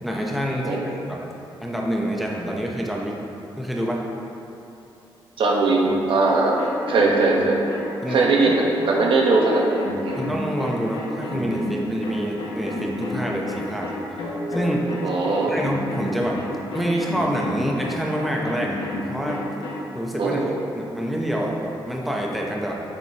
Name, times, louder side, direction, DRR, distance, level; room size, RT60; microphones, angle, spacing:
voice 1, 0.0-1.2 1.6-3.2 3.6-4.0 6.6-6.7 8.0-8.3 10.1-13.9 14.5-14.9 15.5-16.5 16.7-19.5 19.9-22.8, equal, ahead, -2 dB, 0.7 m, -27 dB
voice 2, 5.4-5.8 6.1-7.6 8.1-9.8 10.0-10.2 15.0-15.5 20.2-20.5, right 3 dB, 75° right, -2 dB, 1.1 m, -20 dB
sound 1, 5.8-19.8, left 1 dB, 75° left, 1.5 m, -31 dB
7.6 x 7.4 x 2.9 m, 2.9 s
wide cardioid pair, 125°, 9 cm